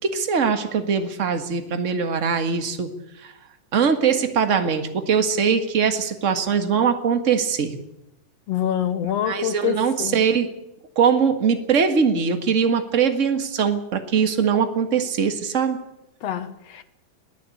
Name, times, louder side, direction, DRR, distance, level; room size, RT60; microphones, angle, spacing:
voice 1, 0.0-2.9 3.2-3.3 3.7-7.8 9.2-10.5 10.9-15.8, right 6 dB, 35° right, 1.3 m, -21 dB
voice 2, 8.5-10.2 16.2-16.8, left 10 dB, 65° left, 1.8 m, -26 dB
22.0 x 15.0 x 8.5 m
omnidirectional pair, 3.8 m